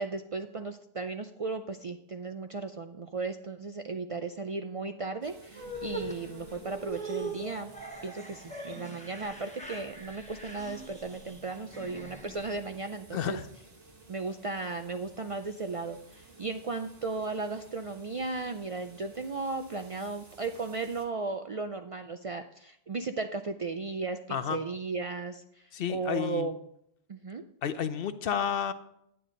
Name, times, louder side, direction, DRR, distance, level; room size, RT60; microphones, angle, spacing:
voice 1, 0.0-7.7 8.0-13.4 14.1-26.6 27.1-27.4, right 3 dB, 50° right, 7 dB, 0.4 m, -36 dB
sound 1, 5.2-21.1, right 3 dB, 75° right, 1.8 m, -54 dB
sound 2, 5.5-12.9, right 2 dB, 5° left, 1.1 m, -42 dB
voice 2, 13.1-13.4 24.3-24.6 25.7-26.5 27.6-28.7, left 8 dB, 65° left, 12 dB, 0.8 m, -31 dB
10.0 x 9.2 x 3.9 m, 0.75 s
omnidirectional pair, 1.1 m